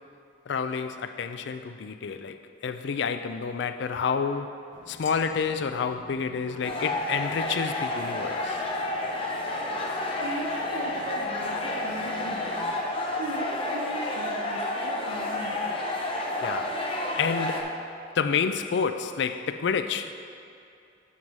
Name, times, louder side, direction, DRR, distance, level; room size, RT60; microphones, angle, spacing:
voice 1, 0.5-4.5 4.9-8.6 16.4-16.8 17.2-17.8 18.1-20.1, left 6 dB, 65° left, 9 dB, 0.4 m, -29 dB
sound 1, 4.7-12.8, left 2 dB, 80° left, 0.8 m, -49 dB
sound 2, 6.6-17.6, left 1 dB, 30° left, 0.7 m, -30 dB
voice 2, 10.2-12.7 13.2-15.8, right 1 dB, 70° right, 0 dB, 0.7 m, -38 dB
7.4 x 4.7 x 5.3 m, 2.5 s
head